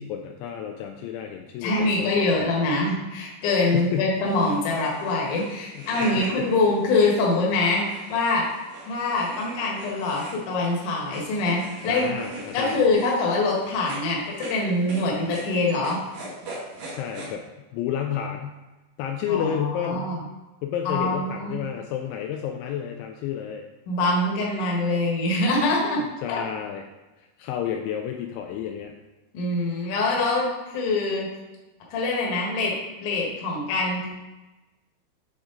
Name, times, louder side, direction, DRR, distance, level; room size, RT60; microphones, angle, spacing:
voice 1, 0.0-2.7 3.7-4.2 5.8-6.5 11.9-12.8 16.9-17.4 17.7-18.6 19.0-20.1 20.6-23.6 26.2-26.9 27.2-28.9, left 9 dB, 85° left, 4 dB, 2.8 m, -31 dB
voice 2, 1.6-8.5 8.8-12.1 12.5-16.0 19.3-20.2 20.9-21.6 23.9-26.0 26.3-26.4 29.3-30.5 30.7-31.3 31.9-32.7 33.0-34.1, left 2 dB, 60° left, -3 dB, 2.3 m, -24 dB
sound 1, 4.2-17.3, right 1 dB, 50° right, 2.4 m, -41 dB
9.4 x 4.9 x 3.8 m, 1.1 s
omnidirectional pair, 5.5 m